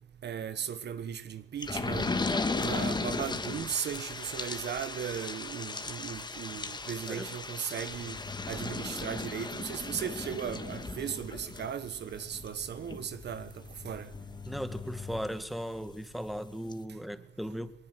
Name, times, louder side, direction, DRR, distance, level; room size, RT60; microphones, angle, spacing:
voice 1, 0.2-2.1 2.5-8.2 8.5-13.5 13.8-14.1, right 8 dB, 60° right, 1.5 m, -37 dB
sound 1, 1.6-15.9 16.3-16.4 16.7-16.8, left 3 dB, 20° left, 1.9 m, -37 dB
voice 2, 14.4-17.7, equal, ahead, 2.1 m, -37 dB
21.0 x 20.5 x 8.2 m
cardioid pair, 90°, 20 cm